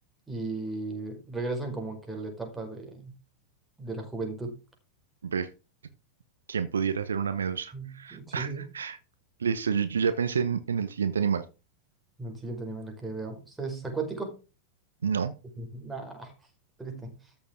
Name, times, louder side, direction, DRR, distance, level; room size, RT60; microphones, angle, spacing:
voice 1, 0.3-3.1 3.8-4.6 7.7-8.6 12.2-14.3 15.6-16.3 16.8-17.3, right 3 dB, 10° right, 2 dB, 4.8 m, -36 dB
voice 2, 6.5-9.0 9.4-11.4 15.0-15.3, right 6 dB, 70° right, 12 dB, 0.9 m, -29 dB
13.5 x 7.0 x 3.7 m, 0.31 s
figure-of-eight pair, 90°, 0 cm